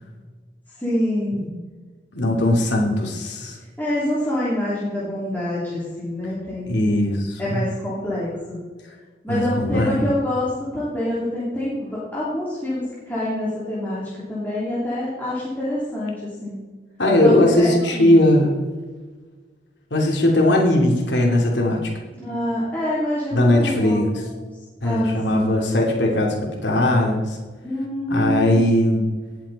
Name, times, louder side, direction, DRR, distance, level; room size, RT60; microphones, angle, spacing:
voice 1, 0.8-1.4 3.8-6.7 7.4-8.6 9.2-16.1 16.4-16.6 17.2-18.2 22.1-24.4 24.8-25.5 27.6-28.7, left 1 dB, 10° left, -9 dB, 3.1 m, -26 dB
voice 2, 2.1-3.6 6.7-7.6 9.3-10.0 17.0-18.5 19.9-21.9 23.3-24.1 24.8-26.3 26.6-27.4 28.1-29.0, left 1 dB, 80° left, 0 dB, 2.8 m, -19 dB
18.0 x 7.7 x 4.2 m, 1.4 s
head